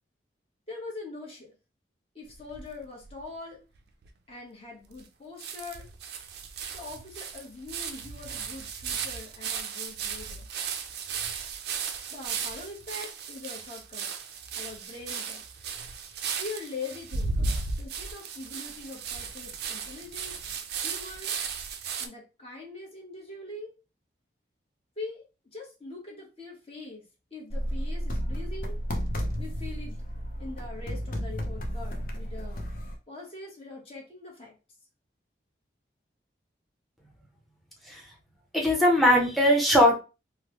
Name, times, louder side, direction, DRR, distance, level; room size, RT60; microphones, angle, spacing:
voice 1, 0.7-1.5 2.1-3.6 4.3-5.9 6.7-10.5 12.1-14.1 14.5-15.5 16.4-20.4 20.8-21.3 22.0-23.7 25.0-25.2 25.5-27.0 27.3-28.8 29.4-30.0 30.4-32.7 33.1-34.5, left 3 dB, 30° left, -1 dB, 1.0 m, -42 dB
sound 1, 2.3-3.2 3.8-3.9 4.0-4.1 5.0-5.1 5.4-22.1, right 5 dB, 65° right, 0.4 m, -35 dB
sound 2, 27.5-33.0, equal, 50° left, 0.5 m, -32 dB
voice 2, 38.5-40.0, left 1 dB, ahead, -1 dB, 0.7 m, -20 dB
3.0 x 2.1 x 2.9 m, 0.31 s
head